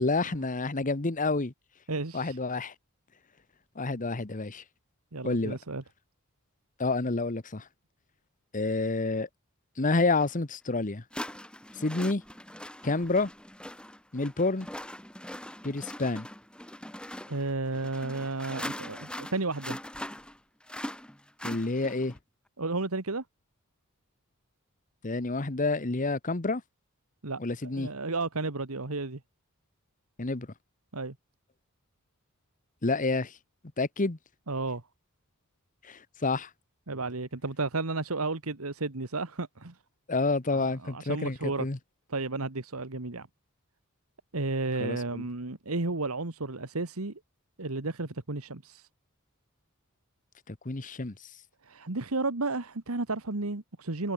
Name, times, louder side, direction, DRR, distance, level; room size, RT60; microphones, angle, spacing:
voice 1, 0.0-1.5 2.1-2.7 3.8-4.6 5.2-5.6 6.8-7.6 8.5-9.3 9.8-11.0 11.7-12.2 12.8-13.3 14.1-14.7 15.6-16.3 21.4-22.1 25.0-26.6 27.4-27.9 30.2-30.5 32.8-33.3 33.8-34.2 35.8-36.5 40.1-41.8 44.8-45.2 50.5-51.1, left 3 dB, 40° left, 1.1 m, -29 dB
voice 2, 1.9-2.4 5.1-5.8 17.3-19.8 22.6-23.2 27.2-29.2 30.9-31.2 34.5-34.8 36.9-39.8 40.5-41.7 42.1-43.3 44.3-47.2 47.6-48.9 51.6-54.1, right 3 dB, 80° right, 1.8 m, -33 dB
sound 1, 10.2-10.3 11.1-22.2, left 1 dB, 5° left, 4.6 m, -41 dB
head